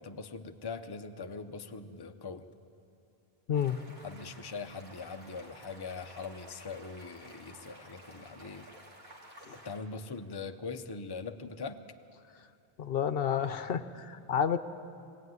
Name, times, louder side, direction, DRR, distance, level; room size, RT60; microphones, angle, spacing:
voice 1, 0.0-2.5 4.0-8.7 9.6-11.8, left 4 dB, 25° left, 7 dB, 0.7 m, -41 dB
sound 1, 3.5-9.8, right 1 dB, 75° right, 3.1 m, -53 dB
voice 2, 12.8-14.6, left 8 dB, 70° left, 11 dB, 0.9 m, -30 dB
21.0 x 16.0 x 9.5 m, 2.5 s
omnidirectional pair, 1.0 m